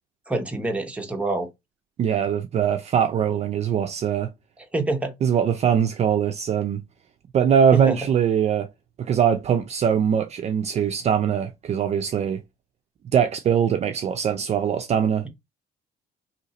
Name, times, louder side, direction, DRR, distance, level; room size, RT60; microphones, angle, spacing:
voice 1, 0.3-1.5 4.7-5.1 7.7-8.0, right 2 dB, 5° right, 0.9 m, -25 dB
voice 2, 2.0-4.3 5.2-6.8 7.3-8.7 9.0-12.4 13.1-15.3, right 8 dB, 40° right, 0.4 m, -22 dB
2.8 x 2.6 x 4.1 m
cardioid pair, 110°, 17 cm